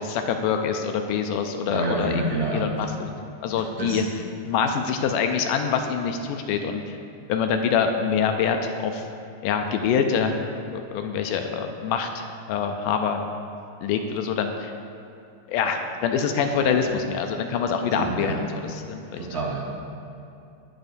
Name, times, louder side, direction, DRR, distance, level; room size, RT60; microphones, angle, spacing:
voice 1, 0.0-2.2 2.5-3.2 3.4-4.0 4.5-7.0 7.3-9.0 9.4-10.4 10.7-13.2 13.8-14.7 15.5-19.3, left 6 dB, 80° left, 5 dB, 2.0 m, -25 dB
voice 2, 1.7-2.7 3.8-4.0 16.6-16.8 18.0-18.4 19.2-19.7, right 2 dB, 65° right, -5 dB, 1.9 m, -28 dB
19.5 x 6.6 x 2.6 m, 2.7 s
omnidirectional pair, 3.9 m